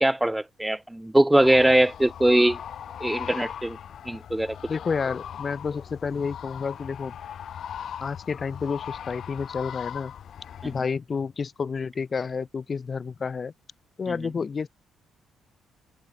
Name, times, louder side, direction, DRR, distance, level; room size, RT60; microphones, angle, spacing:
voice 1, 0.0-2.6 3.0-3.8 4.1-4.6, right 1 dB, 10° right, 0.7 m, -21 dB
sound 1, 1.4-10.8, left 9 dB, 60° left, 2.3 m, -39 dB
voice 2, 4.7-7.2 8.0-10.1 10.6-13.5 14.0-14.7, left 5 dB, 40° left, 0.9 m, -30 dB
open air
cardioid pair, 90°, 0 cm